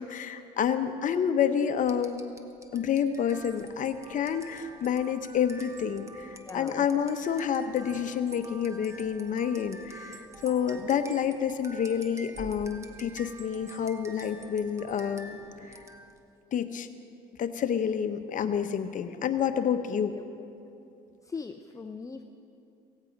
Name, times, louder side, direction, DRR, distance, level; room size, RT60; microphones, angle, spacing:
voice 1, 0.0-2.3 2.7-15.8 16.5-16.9 17.4-20.1, left 8 dB, 50° left, 9 dB, 0.9 m, -29 dB
sound 1, 1.8-16.3, right 2 dB, 15° right, 1.1 m, -48 dB
voice 2, 6.4-6.9 19.9-20.3 21.2-22.2, left 5 dB, 20° left, 6 dB, 0.6 m, -40 dB
16.5 x 16.5 x 5.2 m, 2.7 s
cardioid pair, 110°, 17 cm